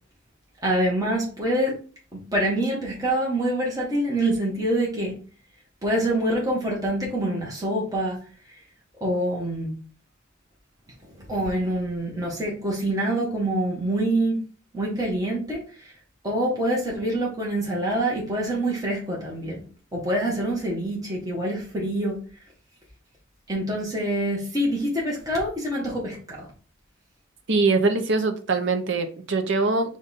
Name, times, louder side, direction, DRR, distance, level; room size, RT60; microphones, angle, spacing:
voice 1, 0.6-1.7 2.1-5.1 5.8-8.2 8.5-8.6 9.0-9.7 11.0-14.4 14.7-15.9 16.2-19.6 19.9-22.2 23.5-26.5, right 1 dB, 20° right, -3 dB, 1.2 m, -26 dB
voice 2, 27.5-30.0, right 3 dB, 65° right, 7 dB, 0.7 m, -23 dB
5.1 x 2.5 x 4.1 m, 0.40 s
head